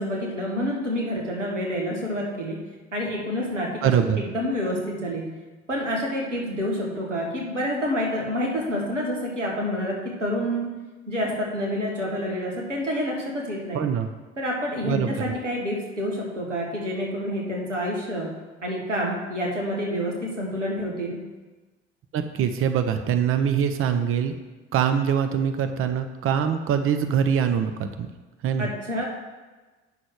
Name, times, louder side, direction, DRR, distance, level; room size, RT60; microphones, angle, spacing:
voice 1, 0.0-2.6 2.9-5.3 5.7-10.7 11.1-13.8 14.4-18.3 18.6-21.2 28.6-29.0, equal, 90° right, -2 dB, 1.5 m, -28 dB
voice 2, 3.8-4.2 13.7-14.1 14.8-15.3 22.1-24.3 24.7-28.1 28.4-28.7, right 8 dB, 35° right, 7 dB, 0.8 m, -23 dB
8.9 x 6.1 x 4.8 m, 1.2 s
figure-of-eight pair, 55°, 36 cm